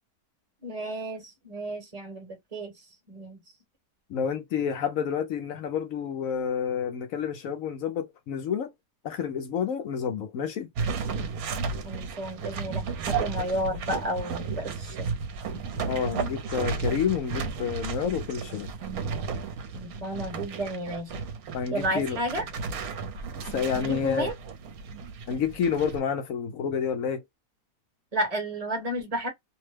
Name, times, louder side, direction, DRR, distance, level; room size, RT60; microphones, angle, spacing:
voice 1, 0.6-2.7 3.1-3.4 11.8-15.2 19.7-21.2 21.7-22.4 23.7-24.3 28.1-29.3, right 1 dB, 25° right, 1.1 m, -32 dB
voice 2, 4.1-8.7 9.0-10.7 15.9-18.7 21.5-22.2 23.5-24.3 25.3-27.2, left 7 dB, 70° left, 0.9 m, -29 dB
sound 1, 10.8-26.0, right 5 dB, 70° right, 1.1 m, -33 dB
2.8 x 2.1 x 3.2 m
omnidirectional pair, 1.7 m